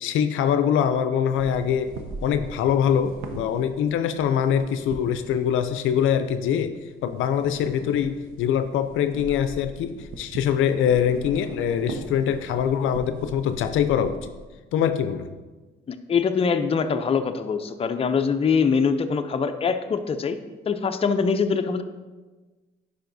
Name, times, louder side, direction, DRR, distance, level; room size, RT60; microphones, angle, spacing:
voice 1, 0.0-1.9 2.2-6.8 7.0-14.3 14.7-15.4, left 8 dB, 85° left, 10 dB, 0.4 m, -23 dB
sound 1, 1.3-6.8 7.0-14.5, right 3 dB, 85° right, 0.7 m, -40 dB
voice 2, 15.9-20.4 20.7-21.8, left 5 dB, 30° left, 7 dB, 0.5 m, -23 dB
10.5 x 5.0 x 2.6 m, 1.3 s
cardioid pair, 90°, 20 cm